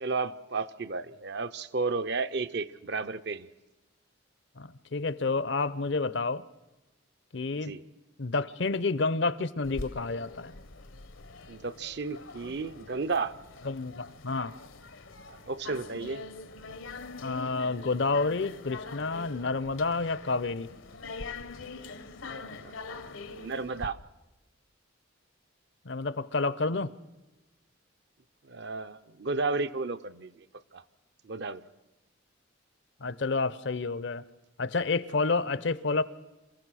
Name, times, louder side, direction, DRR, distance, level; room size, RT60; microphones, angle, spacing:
voice 1, 0.0-3.5 7.6-7.8 11.5-13.3 15.3-16.2 22.3-24.0 28.4-30.5 30.7-30.8 31.2-31.6, right 4 dB, 55° right, 12 dB, 0.6 m, -33 dB
voice 2, 4.6-6.4 7.3-7.8 8.2-10.5 13.6-14.6 17.2-20.7 25.8-26.9 33.0-34.2 34.6-36.0, left 3 dB, 60° left, 17 dB, 0.7 m, -29 dB
sound 1, 9.6-23.9, left 3 dB, 80° left, 1.0 m, -44 dB
27.5 x 15.0 x 6.3 m, 1.1 s
head